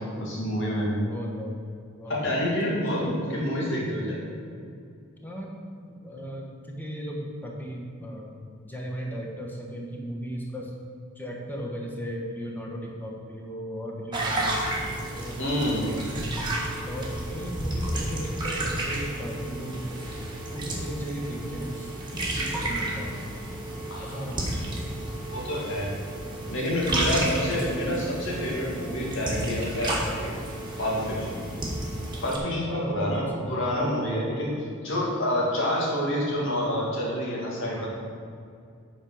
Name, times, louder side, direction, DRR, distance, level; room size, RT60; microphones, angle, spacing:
voice 1, 0.0-1.0 2.1-4.2 15.4-15.8 23.9-24.2 25.3-25.9 26.5-30.3 30.8-31.4 32.2-34.5 34.8-37.9, equal, 60° left, -4 dB, 2.4 m, -28 dB
voice 2, 1.1-1.5 2.0-2.3 2.7-3.2 5.2-5.5 5.8-8.3 8.6-10.7 11.1-14.7 15.1-15.4 15.8-16.0 16.8-20.0 20.5-21.9 22.2-23.1 24.0-24.6 27.0-28.0 31.6-31.8 32.7-34.0 37.7-37.9, equal, 10° left, -2 dB, 1.4 m, -36 dB
sound 1, 14.1-32.4, right 1 dB, 20° right, 1.6 m, -32 dB
8.7 x 5.2 x 6.4 m, 2.4 s
head